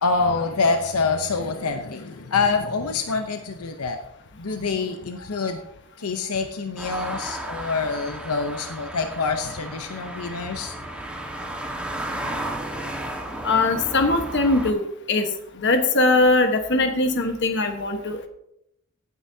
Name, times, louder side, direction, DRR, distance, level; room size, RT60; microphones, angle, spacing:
voice 1, 0.0-4.0 4.4-5.6 6.0-10.8, left 4 dB, 85° left, 6 dB, 0.8 m, -26 dB
sound 1, 6.8-14.7, right 1 dB, 5° right, 1.4 m, -33 dB
voice 2, 13.4-15.3 15.6-18.3, left 2 dB, 55° left, 6 dB, 1.3 m, -21 dB
17.0 x 9.3 x 2.8 m, 0.78 s
head